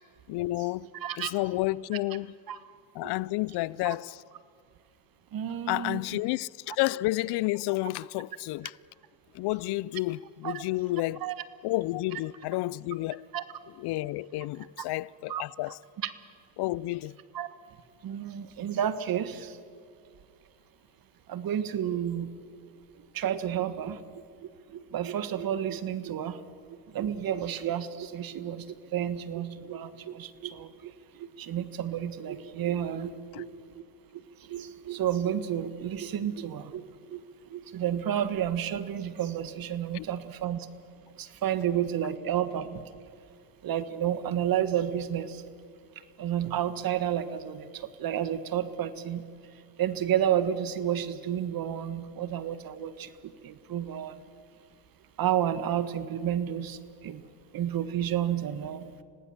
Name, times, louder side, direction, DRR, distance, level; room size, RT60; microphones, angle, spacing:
voice 1, 0.3-0.9 1.2-2.3 3.0-4.2 5.7-8.8 9.3-11.3 11.6-13.3 13.8-15.8 16.6-17.1 33.3-33.4 39.9-40.1, left 19 dB, 65° left, 0.6 m, -30 dB
voice 2, 1.0-1.3 2.5-2.6 3.0-3.1 3.8-3.9 5.3-6.2 10.4-10.6 11.2-11.3 13.3-13.4 14.8-14.9 15.3-15.4 16.0-16.1 17.3-17.5 18.0-19.6 21.3-22.3 23.1-24.0 24.4-26.4 26.7-30.9 31.2-33.5 33.8-33.9 34.5-37.2 37.5-40.7 41.2-42.8 43.6-45.4 46.2-49.2 49.8-54.1 55.2-57.2 57.5-58.9, right 10 dB, 55° right, 1.5 m, -31 dB
26.5 x 18.5 x 7.3 m
supercardioid pair, 80°, 43 cm